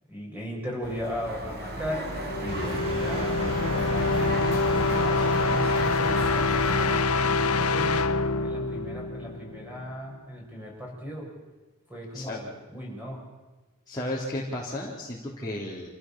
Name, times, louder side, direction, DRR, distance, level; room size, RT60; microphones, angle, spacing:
voice 1, 0.1-8.1 8.4-11.3 11.9-13.2, equal, 10° right, -2 dB, 6.9 m, -37 dB
sound 1, 0.8-7.0, right 1 dB, 50° right, 4.1 m, -35 dB
sound 2, 2.1-9.9, left 3 dB, 75° left, 1.1 m, -26 dB
sound 3, 2.5-6.4, equal, 25° right, 7.1 m, -38 dB
voice 2, 13.9-15.9, left 1 dB, 20° left, -5 dB, 3.4 m, -33 dB
27.0 x 15.5 x 7.6 m, 1.2 s
head